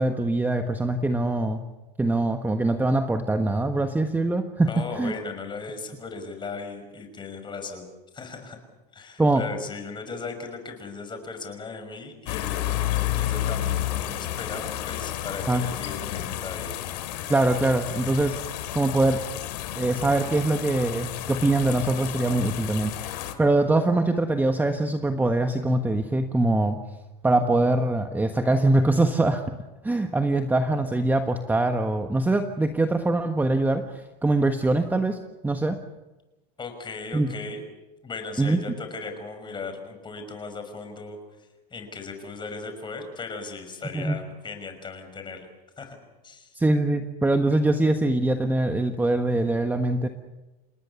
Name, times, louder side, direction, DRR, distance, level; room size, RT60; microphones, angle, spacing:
voice 1, 0.0-1.6 2.0-5.1 9.2-9.4 15.5-15.6 17.3-18.4 18.7-19.2 19.7-26.8 27.2-29.4 29.8-35.8 37.1-37.3 38.4-38.6 43.9-44.2 46.5-50.1, right 2 dB, 10° right, 6 dB, 1.3 m, -23 dB
voice 2, 4.7-7.9 8.1-8.6 8.9-16.7 36.6-37.6 38.0-45.5 45.8-46.0 46.2-46.5, left 4 dB, 20° left, 6 dB, 5.8 m, -37 dB
sound 1, 12.3-23.3, left 13 dB, 80° left, 3.0 m, -31 dB
28.5 x 19.0 x 7.0 m, 1.1 s
supercardioid pair, 120°, 21 cm